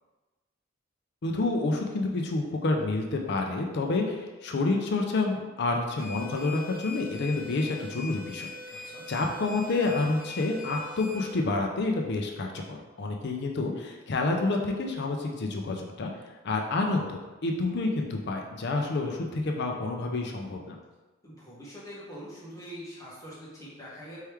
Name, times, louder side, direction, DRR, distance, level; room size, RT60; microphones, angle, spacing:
voice 1, 1.2-16.1 16.4-20.7, left 3 dB, 55° left, 2 dB, 0.5 m, -29 dB
sound 1, 6.0-11.3, left 3 dB, 40° left, 1.5 m, -42 dB
voice 2, 8.7-9.0 18.9-19.4 21.2-24.2, equal, 15° left, -8 dB, 1.3 m, -44 dB
4.5 x 3.1 x 3.4 m, 1.2 s
head